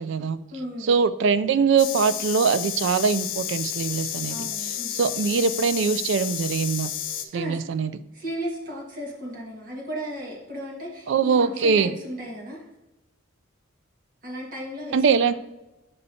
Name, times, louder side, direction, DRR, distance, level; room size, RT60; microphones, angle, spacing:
voice 1, 0.0-0.4 0.8-6.9 7.3-7.9 11.1-11.9 14.9-15.3, right 5 dB, 65° right, 13 dB, 0.3 m, -22 dB
voice 2, 0.5-0.9 4.3-4.9 7.3-7.6 8.1-12.6 14.2-15.3, equal, 40° right, -3 dB, 1.6 m, -35 dB
sound 1, 1.8-7.3, left 11 dB, 65° left, 0.4 m, -31 dB
6.9 x 5.2 x 2.7 m, 0.97 s
head